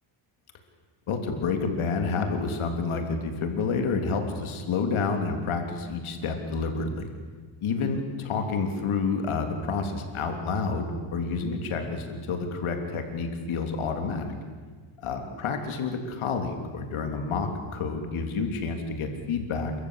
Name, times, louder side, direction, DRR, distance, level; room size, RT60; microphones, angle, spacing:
voice 1, 1.1-7.0 7.6-14.3 15.0-19.7, left 4 dB, 75° left, 5 dB, 3.4 m, -29 dB
29.0 x 14.0 x 8.2 m, 1.5 s
cardioid pair, 90°, 50 cm